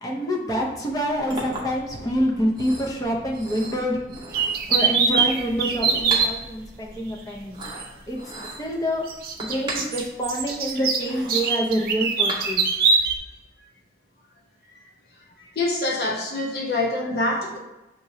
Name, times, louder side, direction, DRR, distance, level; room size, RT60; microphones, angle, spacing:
voice 1, 0.0-4.0 4.7-7.6 8.1-8.2 8.6-9.0 9.4-12.6, equal, 20° left, -2 dB, 0.6 m, -26 dB
Chink clink, 0.9-12.9, right 3 dB, 25° right, 0.8 m, -37 dB
sound 1, 4.3-6.3 7.8-7.9 9.1-13.2, right 5 dB, 50° right, 0.5 m, -22 dB
voice 2, 15.4-17.6, left 2 dB, 60° left, 0 dB, 0.6 m, -25 dB
6.0 x 2.9 x 2.7 m, 1.0 s
head